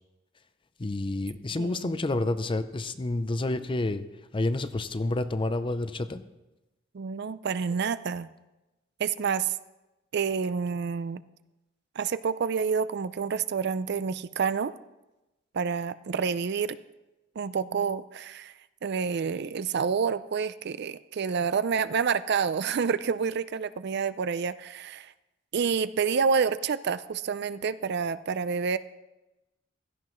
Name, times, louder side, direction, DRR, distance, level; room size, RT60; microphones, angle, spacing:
voice 1, 0.8-4.0 4.3-6.2, left 2 dB, 25° left, 12 dB, 0.5 m, -29 dB
voice 2, 1.6-1.9 6.9-8.3 9.0-9.6 10.1-11.2 12.0-14.7 15.5-16.8 17.4-18.5 18.8-25.1 25.5-28.8, right 6 dB, 60° right, 14 dB, 0.4 m, -28 dB
16.0 x 14.0 x 3.1 m, 1.0 s
head